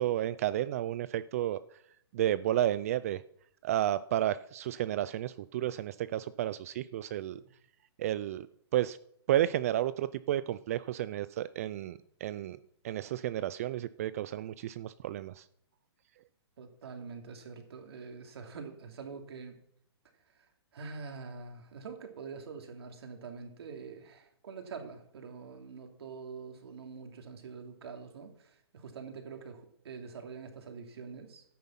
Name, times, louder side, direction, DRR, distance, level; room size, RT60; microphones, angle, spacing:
voice 1, 0.0-1.6 2.1-3.2 3.6-7.4 8.0-8.5 8.7-9.0 9.3-12.6 12.8-15.4, right 12 dB, 35° right, 16 dB, 0.4 m, -32 dB
voice 2, 16.6-19.6 20.3-31.4, right 5 dB, 65° right, 4 dB, 2.7 m, -45 dB
13.5 x 9.4 x 5.8 m, 0.71 s
hypercardioid pair, 160°, 14 cm